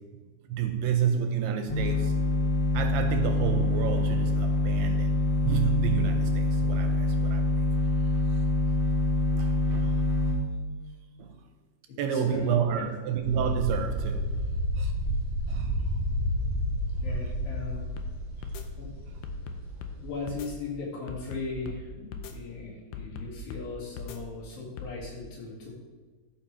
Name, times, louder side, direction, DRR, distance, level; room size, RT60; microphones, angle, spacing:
voice 1, 0.4-2.2 2.7-7.7 8.7-8.8 9.3-10.0 11.2-11.4 12.0-14.4 14.8-15.0 15.5-15.7 18.6-18.7, right 7 dB, 85° right, 6 dB, 2.5 m, -30 dB
sound 1, 1.7-10.3, left 2 dB, 30° left, 1.7 m, -25 dB
voice 2, 12.1-12.9 17.0-17.9 18.8-18.9 20.0-25.7, left 3 dB, 60° left, -5 dB, 3.7 m, -38 dB
sound 2, 13.2-20.3, equal, 30° right, 1.1 m, -31 dB
sound 3, 17.6-18.1 18.4-18.6 19.2-20.0 20.3-20.5 21.1-21.8 22.1-22.3 22.9-23.7 24.0-24.2 24.8-24.9, left 6 dB, 80° left, 2.5 m, -39 dB
12.0 x 5.5 x 4.4 m, 1.4 s
omnidirectional pair, 4.9 m